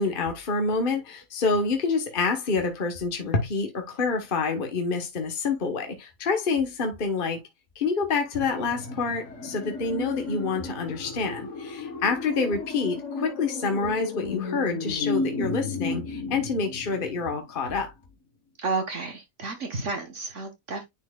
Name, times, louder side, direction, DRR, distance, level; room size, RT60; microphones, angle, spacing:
voice 1, 0.0-7.4 7.7-17.9, left 4 dB, 40° left, 1.3 m, -27 dB
sound 1, 8.3-17.5 17.8-17.9, left 3 dB, 65° left, 1.8 m, -33 dB
voice 2, 18.6-20.8, right 4 dB, 60° right, 1.6 m, -31 dB
9.9 x 4.5 x 2.3 m
omnidirectional pair, 1.4 m